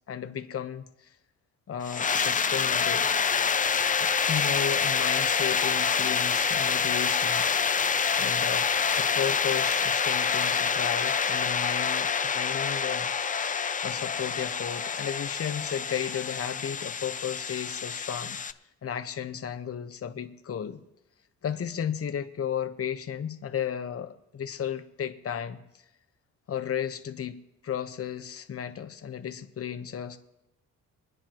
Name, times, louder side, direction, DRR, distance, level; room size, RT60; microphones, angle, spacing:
voice 1, 0.1-1.1 1.7-3.1 4.0-8.7 9.0-18.4 18.8-20.8 21.4-25.6 26.5-30.2, left 8 dB, 50° left, 7 dB, 1.2 m, -34 dB
sound 1, 1.8-18.5, left 6 dB, 25° left, 0.6 m, -27 dB
27.5 x 9.7 x 3.1 m, 0.91 s
cardioid pair, 90°, 30 cm